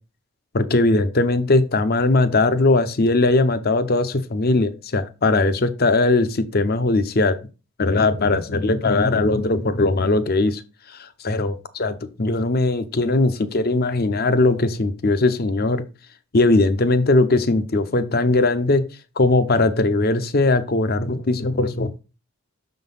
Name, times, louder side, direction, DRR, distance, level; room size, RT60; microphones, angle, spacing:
voice 1, 0.5-7.4 7.8-10.6 11.0-11.5 11.8-11.9 12.2-15.8 16.3-18.9 19.2-21.9, left 2 dB, 45° left, 12 dB, 0.7 m, -19 dB
6.5 x 3.9 x 5.4 m, 0.32 s
head